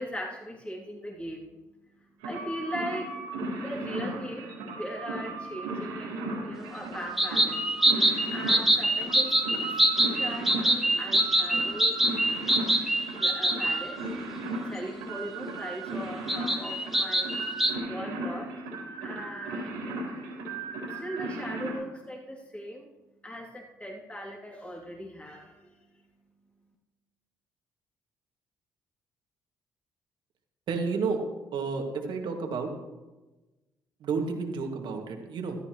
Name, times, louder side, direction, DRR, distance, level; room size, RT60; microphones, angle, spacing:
voice 1, 0.0-3.1 3.6-9.8 10.2-12.0 13.2-14.0 14.6-20.0 20.8-22.9 23.2-26.0, equal, 15° left, -1 dB, 2.6 m, -40 dB
sound 1, 2.2-21.7, right 2 dB, 85° right, 3.8 m, -36 dB
sound 2, 7.2-13.8 16.3-17.7, right 1 dB, ahead, 2.0 m, -24 dB
voice 2, 30.7-31.2 31.5-32.7 34.0-35.6, right 5 dB, 65° right, 3 dB, 2.1 m, -31 dB
15.5 x 13.0 x 3.1 m, 1.1 s
hypercardioid pair, 55°, 9 cm